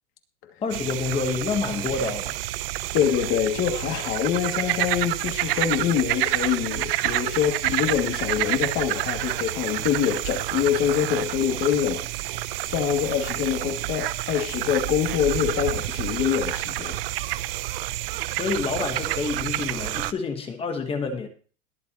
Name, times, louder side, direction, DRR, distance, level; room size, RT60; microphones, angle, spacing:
voice 1, 0.6-2.4 18.4-21.3, left 4 dB, 15° left, 1.2 m, -28 dB
sound 1, 0.7-20.1, right 16 dB, 45° right, 0.6 m, -29 dB
voice 2, 2.9-12.1 12.6-17.0, left 9 dB, 30° left, 2.4 m, -25 dB
22.0 x 7.6 x 2.9 m
supercardioid pair, 160°, 41 cm